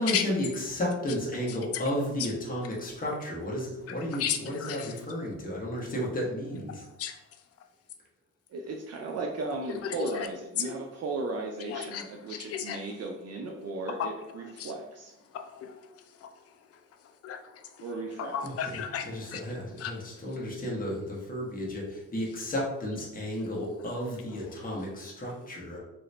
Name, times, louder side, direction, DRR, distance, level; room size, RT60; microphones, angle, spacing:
voice 1, 0.0-6.7 18.4-18.8 19.1-25.8, equal, 30° left, -4 dB, 1.1 m, -33 dB
voice 2, 1.5-1.8 2.2-2.3 3.9-4.9 6.7-7.2 9.7-10.3 10.6-10.7 11.7-12.8 14.0-14.1 14.6-14.7 15.3-17.9 18.2-19.4 19.8-20.1 24.3-24.9, left 8 dB, 50° left, 5 dB, 0.4 m, -35 dB
voice 3, 8.5-15.2 17.8-18.4, right 3 dB, 55° right, 1 dB, 0.4 m, -36 dB
2.8 x 2.6 x 3.2 m, 0.95 s
cardioid pair, 95°, 30 cm